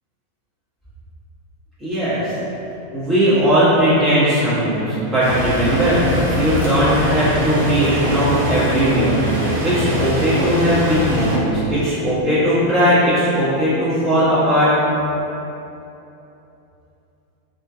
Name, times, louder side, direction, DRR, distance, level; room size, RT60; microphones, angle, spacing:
voice 1, 1.8-2.3 2.9-14.7, equal, 20° right, -13 dB, 1.5 m, -18 dB
sound 1, 5.2-11.4, equal, 60° right, 0.7 m, -22 dB
3.0 x 2.7 x 2.3 m, 2.9 s
figure-of-eight pair, 90°, 0 cm